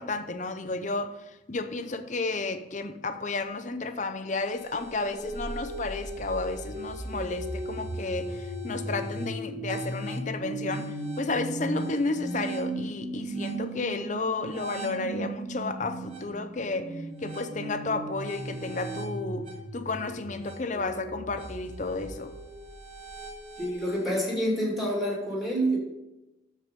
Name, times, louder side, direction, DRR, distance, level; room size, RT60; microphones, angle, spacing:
voice 1, 0.0-22.3, left 3 dB, 40° left, 0.7 m, -32 dB
sound 1, 4.3-24.0, right 1 dB, 45° right, 3.1 m, -37 dB
voice 2, 23.6-25.8, right 1 dB, ahead, 2.5 m, -27 dB
13.0 x 4.8 x 5.3 m
head